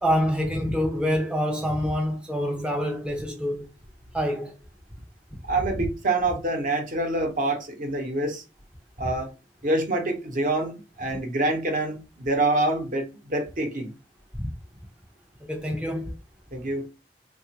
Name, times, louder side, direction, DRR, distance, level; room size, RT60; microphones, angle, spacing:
voice 1, 0.0-3.7 4.1-4.6 5.8-5.9 9.0-9.1 14.4-14.5 15.4-16.2, equal, 5° right, 0.4 m, -26 dB
voice 2, 5.5-8.4 9.0-9.3 9.6-13.9 16.5-16.9, right 2 dB, 50° right, 0.8 m, -26 dB
3.3 x 2.4 x 2.9 m
head